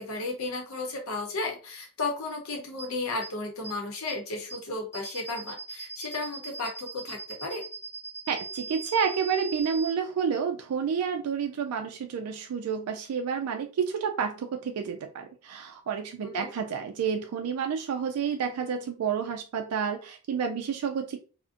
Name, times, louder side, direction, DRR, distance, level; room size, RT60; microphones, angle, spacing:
voice 1, 0.0-7.6 16.2-16.5, left 3 dB, 70° left, 2 dB, 0.7 m, -34 dB
sound 1, 2.8-2.9 3.2-3.3 3.6-3.7 4.1-4.2 4.5-4.6 4.9-9.9, right 4 dB, 10° left, 0.4 m, -39 dB
voice 2, 8.3-21.2, right 6 dB, 85° right, 4 dB, 0.3 m, -30 dB
2.5 x 2.1 x 2.4 m, 0.36 s
head